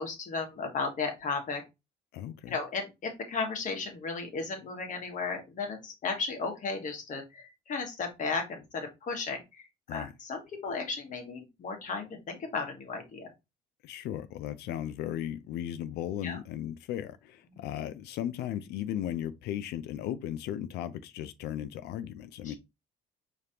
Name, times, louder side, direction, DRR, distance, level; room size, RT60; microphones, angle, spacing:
voice 1, 0.0-1.6 2.5-9.6 9.9-13.3 16.2-16.4 17.5-17.7 22.4-22.6, left 4 dB, 50° left, 1.5 m, -35 dB
voice 2, 2.1-2.6 9.9-10.1 13.8-22.6, left 11 dB, 80° left, 0.5 m, -36 dB
5.0 x 3.2 x 2.8 m
cardioid pair, 110°, 17 cm